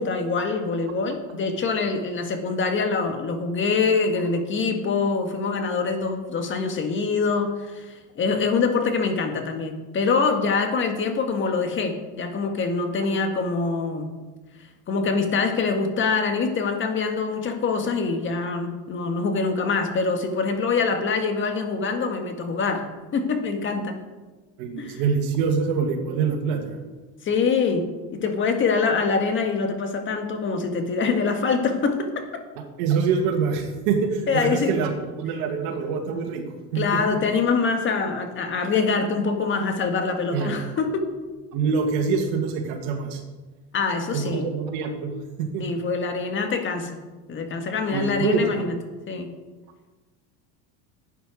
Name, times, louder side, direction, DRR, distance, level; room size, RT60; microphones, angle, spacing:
voice 1, 0.0-14.1 14.9-22.9 23.1-24.0 24.8-25.0 27.2-32.3 34.3-34.8 36.7-41.1 43.7-44.5 45.6-47.0 47.3-48.7 49.1-49.3, left 4 dB, 35° left, 5 dB, 1.7 m, -24 dB
voice 2, 24.6-26.8 32.8-36.4 36.7-37.0 40.3-40.6 41.5-43.2 44.1-45.1 45.4-45.6 47.9-48.6, right 5 dB, 75° right, 4 dB, 2.1 m, -25 dB
11.5 x 9.1 x 5.1 m, 1.2 s
supercardioid pair, 120°, 34 cm